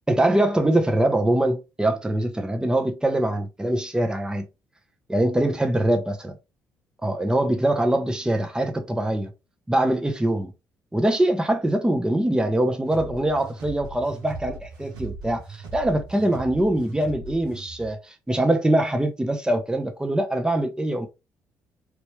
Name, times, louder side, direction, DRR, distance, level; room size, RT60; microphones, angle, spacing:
voice 1, 0.1-4.4 5.1-6.3 7.0-9.3 9.7-10.5 10.9-18.0 18.3-21.1, right 1 dB, 10° right, 0.8 m, -23 dB
sound 1, 12.9-17.9, right 4 dB, 70° right, 1.2 m, -39 dB
3.1 x 3.0 x 3.0 m
hypercardioid pair, 50°, 8 cm